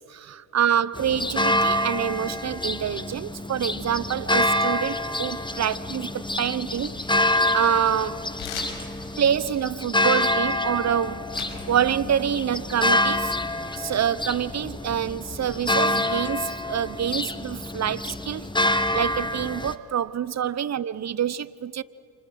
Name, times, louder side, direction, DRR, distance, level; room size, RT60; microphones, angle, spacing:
voice 1, 0.0-8.2 9.2-11.2 11.7-13.3 13.8-18.5 18.9-21.8, right 9 dB, 40° right, 18 dB, 0.8 m, -26 dB
sound 1, 0.9-19.8, left 1 dB, 10° left, 1.2 m, -27 dB
sound 2, 6.5-7.8 8.4-11.6 11.9-12.8, left 7 dB, 75° left, 5.9 m, -41 dB
29.5 x 28.0 x 6.4 m, 2.6 s
supercardioid pair, 70°, 43 cm